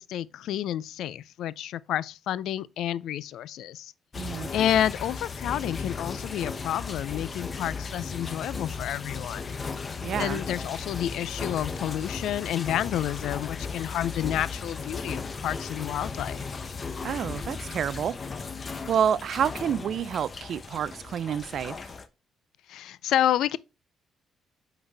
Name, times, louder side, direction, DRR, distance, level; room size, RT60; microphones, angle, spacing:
voice 1, 0.0-3.9 4.5-9.5 10.2-16.4 22.7-23.6, left 11 dB, 80° left, 0.3 m, -30 dB
sound 1, 4.1-22.1, left 5 dB, 35° left, 0.6 m, -36 dB
voice 2, 4.2-4.5 10.0-10.4 17.0-18.2 18.9-21.8, right 8 dB, 65° right, 0.3 m, -28 dB
7.9 x 4.0 x 3.3 m
cardioid pair, 90°, 0 cm